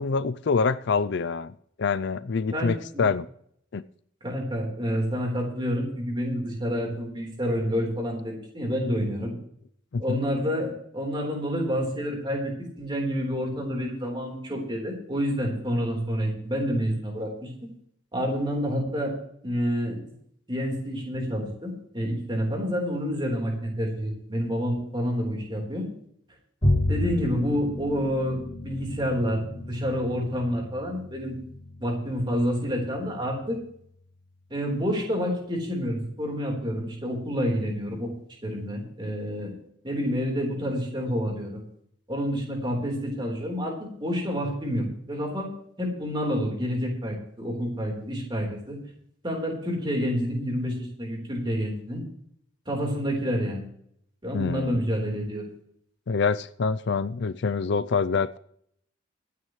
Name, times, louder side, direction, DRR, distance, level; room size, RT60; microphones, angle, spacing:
voice 1, 0.0-3.3 3.7-3.8 9.9-10.2 54.3-54.8 56.1-58.4, left 5 dB, 55° left, 0.4 m, -26 dB
voice 2, 2.5-3.1 4.2-9.3 10.0-17.7 18.1-19.1 19.4-20.0 20.5-25.9 26.9-31.4 31.8-33.6 34.5-38.1 38.4-39.5 39.8-41.6 42.1-45.5 45.8-48.8 49.2-52.0 52.7-53.6 54.2-55.4, equal, 25° right, 3.9 m, -28 dB
Bowed string instrument, 26.6-33.1, left 1 dB, 30° left, 2.5 m, -31 dB
24.0 x 9.6 x 3.2 m
head